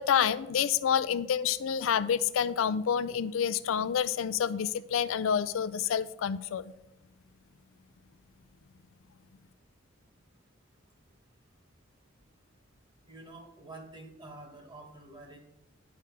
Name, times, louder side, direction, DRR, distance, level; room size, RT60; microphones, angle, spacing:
voice 1, 0.0-6.7, left 8 dB, 75° left, 15 dB, 0.4 m, -28 dB
voice 2, 13.1-15.4, right 2 dB, 25° right, 3 dB, 1.4 m, -48 dB
9.4 x 4.8 x 4.6 m, 0.88 s
head